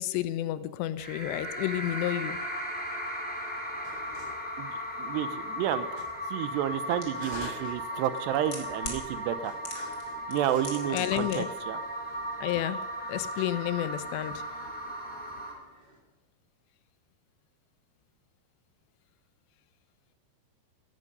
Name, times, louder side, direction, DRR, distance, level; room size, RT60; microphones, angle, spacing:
voice 1, 0.0-2.4 10.9-11.5 12.4-12.8 13.1-14.4, left 13 dB, 80° left, 14 dB, 2.9 m, -30 dB
sound 1, 1.0-15.5, equal, 5° left, 2.1 m, -36 dB
sound 2, 3.6-5.2 5.9-12.5 13.2-13.7 14.0-16.0, right 1 dB, 30° right, 6.3 m, -49 dB
voice 2, 5.0-6.0 6.3-9.5 10.3-11.8, right 11 dB, 80° right, 13 dB, 2.8 m, -31 dB
sound 3, 7.0-7.1 8.0-9.0 9.6-10.0 10.3-11.4 11.6-11.7, left 3 dB, 30° left, 2.7 m, -38 dB
17.0 x 14.5 x 5.4 m, 1.1 s
omnidirectional pair, 5.0 m